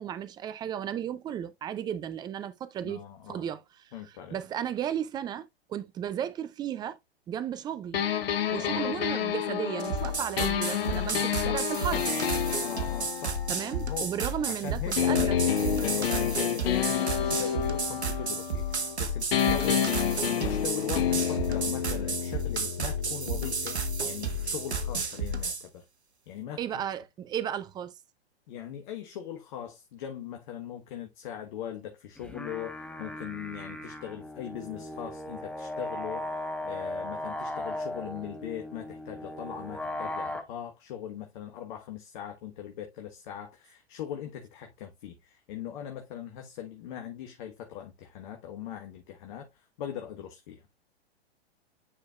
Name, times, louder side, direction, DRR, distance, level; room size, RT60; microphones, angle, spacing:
voice 1, 0.0-3.9 4.3-7.0 7.3-8.0 8.5-12.1 13.5-15.4 26.6-27.9, right 9 dB, 15° right, 0.5 m, -34 dB
voice 2, 2.8-3.4 3.9-4.4 8.5-9.1 10.4-10.6 10.9-11.3 12.6-13.4 13.7-14.1 14.5-25.9 26.3-26.8 28.5-50.6, left 10 dB, 45° left, 1.3 m, -40 dB
sound 1, 7.9-14.5 15.0-19.0 19.3-25.0, left 9 dB, 60° left, 1.1 m, -30 dB
sound 2, 9.8-25.6, right 2 dB, 80° right, 1.4 m, -32 dB
sound 3, 32.2-40.4, left 1 dB, 5° left, 1.1 m, -37 dB
9.9 x 4.6 x 2.4 m
figure-of-eight pair, 110°, 33 cm